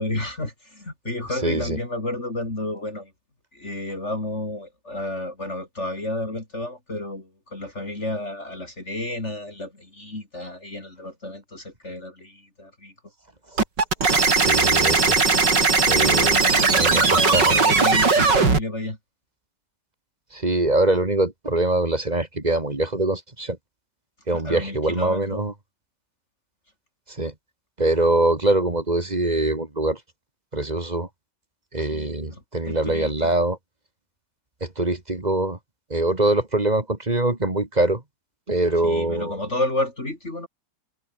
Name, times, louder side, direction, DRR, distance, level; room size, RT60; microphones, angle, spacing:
voice 1, 0.0-3.1 3.5-12.9 16.0-19.0 24.3-25.5 31.8-33.3 38.8-40.5, left 2 dB, 40° left, 4.7 m, -31 dB
voice 2, 1.4-1.8 14.4-15.2 15.9-16.4 16.7-17.6 20.3-23.6 24.3-25.5 27.1-27.3 27.8-30.0 30.5-31.1 31.7-33.6 34.6-35.6 35.9-38.0 38.5-39.4, right 2 dB, 25° right, 2.3 m, -23 dB
sound 1, 13.6-18.6, right 4 dB, 75° right, 4.3 m, -18 dB
omnidirectional pair, 1.9 m